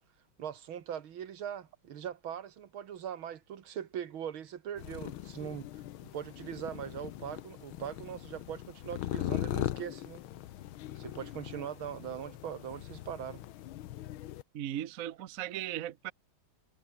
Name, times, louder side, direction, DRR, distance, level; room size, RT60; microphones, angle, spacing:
voice 1, 0.4-10.2 11.0-13.4, right 9 dB, 75° right, 2.2 m, -41 dB
sound 1, 4.8-14.4, left 14 dB, 80° left, 1.7 m, -40 dB
voice 2, 14.5-16.1, right 12 dB, 55° right, 0.9 m, -37 dB
omnidirectional pair, 2.3 m